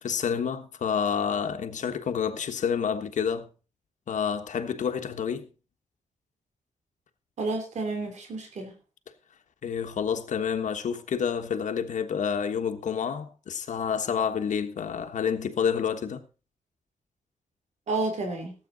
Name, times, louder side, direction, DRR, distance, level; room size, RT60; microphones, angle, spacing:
voice 1, 0.0-3.5 4.1-5.5 9.6-16.3, left 7 dB, 90° left, 1.4 m, -29 dB
voice 2, 7.4-8.7 17.9-18.5, right 3 dB, 70° right, 3.0 m, -30 dB
18.0 x 8.5 x 4.0 m
wide cardioid pair, 155°, 12 cm